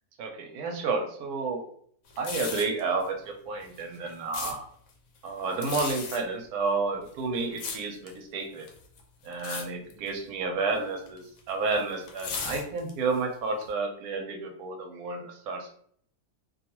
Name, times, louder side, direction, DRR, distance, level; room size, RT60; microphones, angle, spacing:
voice 1, 0.2-1.6 2.2-4.7 5.2-8.7 9.2-15.7, right 3 dB, 85° right, 3 dB, 1.1 m, -31 dB
sound 1, 2.1-2.8 3.6-4.5 5.5-6.2 7.0-8.2 8.6-9.0 9.3-9.6 9.9-10.2 11.1-13.1 13.6-13.7, left 5 dB, 70° left, 1.0 m, -36 dB
2.6 x 2.3 x 2.9 m, 0.62 s
omnidirectional pair, 1.6 m